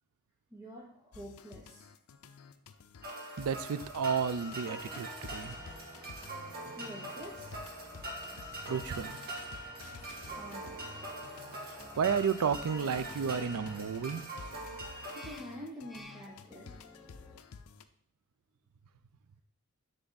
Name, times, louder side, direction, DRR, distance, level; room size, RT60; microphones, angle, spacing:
voice 1, 0.5-1.9 6.7-7.7 10.3-10.9 15.1-16.7, equal, 15° right, -4 dB, 1.0 m, -47 dB
sound 1, 1.1-17.8, left 5 dB, 80° left, 0.5 m, -52 dB
sound 2, 3.0-15.4, right 1 dB, 45° right, 1.7 m, -43 dB
voice 2, 3.4-5.6 8.7-9.2 12.0-14.2, right 6 dB, 75° right, 15 dB, 0.4 m, -32 dB
sound 3, 4.1-17.4, equal, ahead, 0.4 m, -55 dB
9.5 x 3.4 x 4.0 m, 0.63 s
head